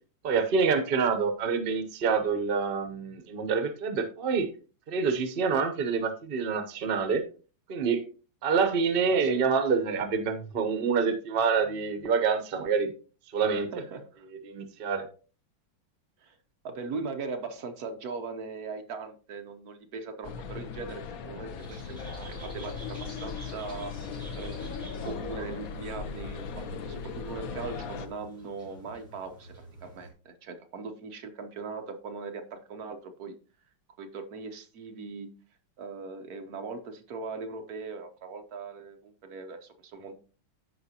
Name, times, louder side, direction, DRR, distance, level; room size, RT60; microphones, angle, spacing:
voice 1, 0.2-4.5 4.9-7.2 7.7-8.0 8.4-12.9 13.3-13.7 14.5-15.0, right 5 dB, 90° right, 8 dB, 0.5 m, -27 dB
voice 2, 9.1-9.5 13.5-14.3 16.2-16.4 16.6-29.5 29.8-33.3 34.0-35.3 35.8-40.1, right 4 dB, 55° right, 6 dB, 1.1 m, -40 dB
sound 1, 20.2-28.1, left 5 dB, 75° left, 0.8 m, -38 dB
sound 2, 21.6-30.1, right 2 dB, 25° right, 3.6 m, -49 dB
14.0 x 4.9 x 2.8 m, 0.36 s
omnidirectional pair, 2.4 m